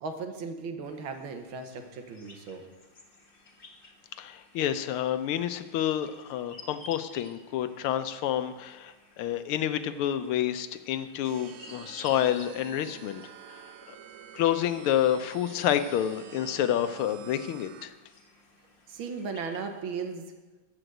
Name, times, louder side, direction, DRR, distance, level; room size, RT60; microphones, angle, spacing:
voice 1, 0.0-2.6 18.9-20.2, right 5 dB, 70° right, 5 dB, 1.8 m, -36 dB
sound 1, 0.8-19.8, left 3 dB, 30° left, 1.3 m, -55 dB
voice 2, 4.2-13.2 13.5-13.6 13.9-14.0 14.3-17.9, left 10 dB, 85° left, 10 dB, 1.6 m, -29 dB
sound 2, 11.2-17.9, right 9 dB, 90° right, 1.6 m, -48 dB
14.0 x 5.1 x 7.8 m, 1.2 s
omnidirectional pair, 2.3 m